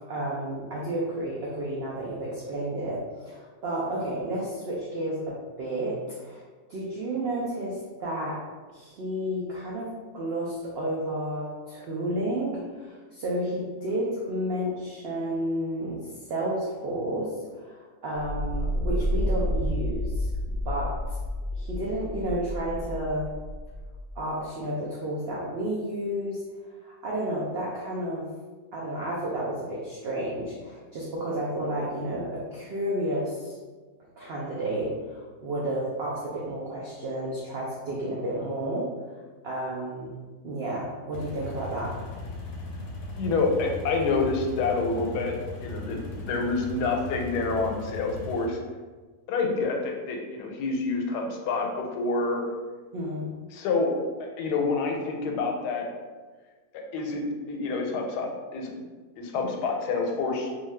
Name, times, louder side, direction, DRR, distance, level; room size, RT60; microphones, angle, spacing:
voice 1, 0.1-6.4 6.7-8.4 8.7-17.3 17.6-20.3 20.7-20.9 21.5-23.3 24.2-26.4 26.8-28.2 28.7-33.6 34.2-38.9 39.4-40.2 40.4-42.0 52.9-53.3, right 1 dB, 85° right, -5 dB, 0.5 m, -31 dB
sound 1, 18.1-24.2, equal, 65° right, 1.1 m, -30 dB
sound 2, 41.1-48.5, left 2 dB, 65° left, 0.8 m, -38 dB
voice 2, 43.2-45.3 45.6-48.6 49.3-52.4 53.5-53.9 54.2-55.9 56.7-57.2 57.5-58.7 59.2-60.5, left 3 dB, 90° left, 2 dB, 1.1 m, -27 dB
2.7 x 2.2 x 3.2 m, 1.4 s
omnidirectional pair, 1.7 m